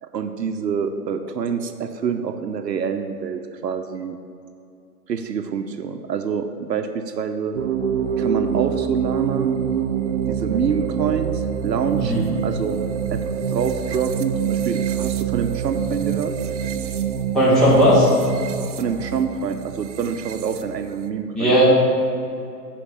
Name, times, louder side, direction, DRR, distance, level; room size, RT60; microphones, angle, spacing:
voice 1, 0.0-4.2 5.1-7.6 8.2-9.5 10.3-12.8 13.1-13.2 13.5-16.3 18.8-21.6, right 6 dB, 90° right, 7 dB, 0.7 m, -26 dB
sound 1, 7.5-21.1, right 8 dB, 50° right, 0.5 m, -26 dB
voice 2, 17.3-18.1 21.3-21.6, equal, ahead, -9 dB, 0.5 m, -15 dB
7.1 x 4.6 x 6.9 m, 2.6 s
hypercardioid pair, 135°, 48 cm